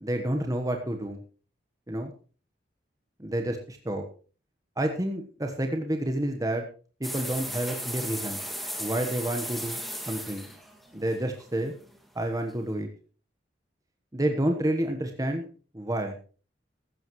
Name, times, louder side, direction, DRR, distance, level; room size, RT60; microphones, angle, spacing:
voice 1, 0.0-1.2 1.9-2.1 3.2-4.0 4.8-6.6 7.0-8.4 8.8-9.8 10.1-10.5 10.9-11.7 12.1-12.9 14.1-15.5 15.7-16.2, right 1 dB, 20° right, 4 dB, 1.2 m, -29 dB
sound 1, 7.0-12.0, equal, ahead, 2.1 m, -36 dB
15.5 x 13.0 x 3.1 m, 0.39 s
head